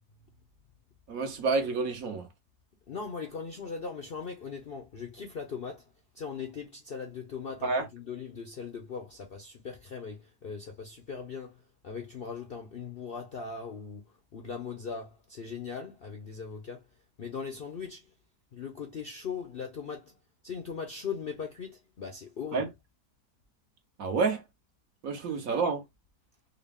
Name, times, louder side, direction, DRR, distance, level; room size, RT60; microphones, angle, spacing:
voice 1, 1.1-2.3 7.6-7.9 22.5-22.7 24.0-24.4 25.0-25.8, right 4 dB, 60° right, 1.3 m, -29 dB
voice 2, 2.9-5.8 6.1-16.8 17.2-18.0 18.5-20.1 20.4-22.7, left 6 dB, 55° left, 0.6 m, -39 dB
3.9 x 2.3 x 3.4 m
omnidirectional pair, 1.8 m